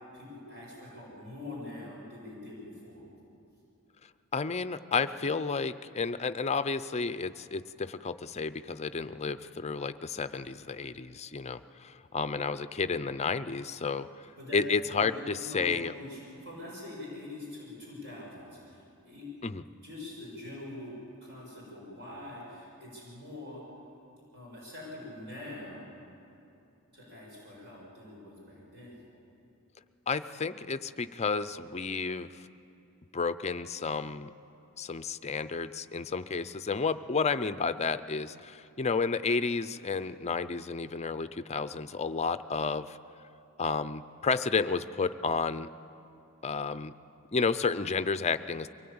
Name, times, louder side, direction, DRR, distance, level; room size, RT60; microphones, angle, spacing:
voice 1, 0.1-3.0 14.4-14.6 14.9-19.3 19.8-23.6 24.3-25.8 26.9-29.0, left 2 dB, 50° right, -4 dB, 7.1 m, -44 dB
voice 2, 4.3-14.3 14.5-15.9 19.4-19.6 30.1-32.4 33.1-34.3 34.8-43.0 43.6-45.7 46.4-46.9 47.3-48.7, left 4 dB, 30° left, 12 dB, 0.5 m, -31 dB
23.5 x 19.5 x 8.7 m, 2.7 s
head